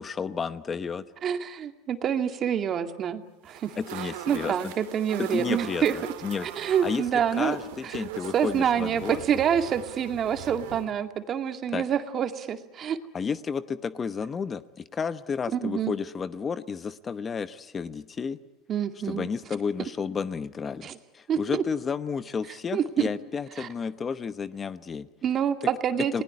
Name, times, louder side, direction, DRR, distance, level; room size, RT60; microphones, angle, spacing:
voice 1, 0.0-1.0 3.7-4.7 5.2-7.1 7.4-9.2 11.7-11.8 13.1-18.4 19.0-25.1 26.1-26.2, left 6 dB, 25° left, 13 dB, 0.9 m, -32 dB
voice 2, 1.2-5.9 6.4-7.6 8.3-13.0 15.5-15.9 18.7-19.3 20.8-20.9 21.3-21.6 22.7-23.1 23.6-23.7 25.2-26.2, right 8 dB, 40° right, 7 dB, 2.1 m, -27 dB
sound 1, 3.5-10.9, right 12 dB, 85° right, 2.4 m, -41 dB
29.5 x 20.0 x 9.7 m, 1.0 s
supercardioid pair, 125°, 0 cm